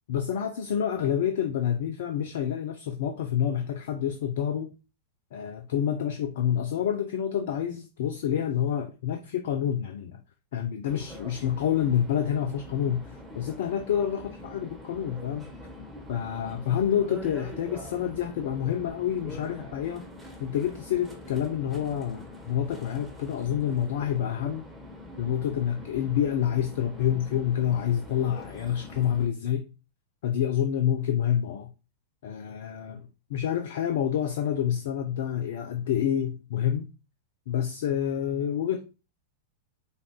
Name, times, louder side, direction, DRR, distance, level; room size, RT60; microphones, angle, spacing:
voice 1, 0.1-4.7 5.3-10.2 10.5-15.5 16.1-20.1 20.4-24.7 25.2-29.7 30.2-31.7 32.2-36.9 37.5-38.8, left 9 dB, 60° left, 0.4 m, -28 dB
sound 1, 10.8-29.3, left 1 dB, ahead, 1.2 m, -44 dB
4.9 x 2.4 x 3.0 m
figure-of-eight pair, 95°, 0 cm